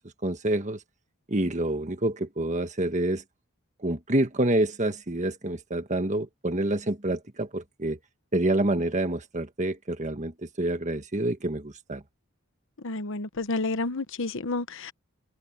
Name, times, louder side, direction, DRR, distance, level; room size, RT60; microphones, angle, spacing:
voice 1, 0.2-0.8 1.3-3.2 3.8-8.0 8.3-12.0, right 1 dB, 35° right, 1.6 m, -27 dB
voice 2, 12.8-14.9, left 2 dB, 60° left, 1.0 m, -30 dB
head